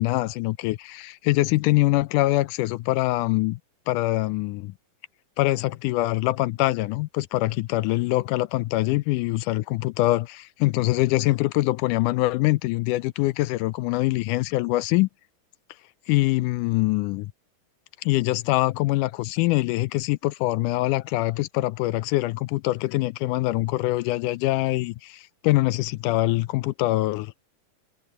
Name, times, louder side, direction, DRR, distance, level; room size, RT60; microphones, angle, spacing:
voice 1, 0.0-3.6 3.9-4.7 5.4-15.1 16.1-17.3 18.0-27.4, left 18 dB, 80° left, 2.0 m, -24 dB
omnidirectional pair, 3.8 m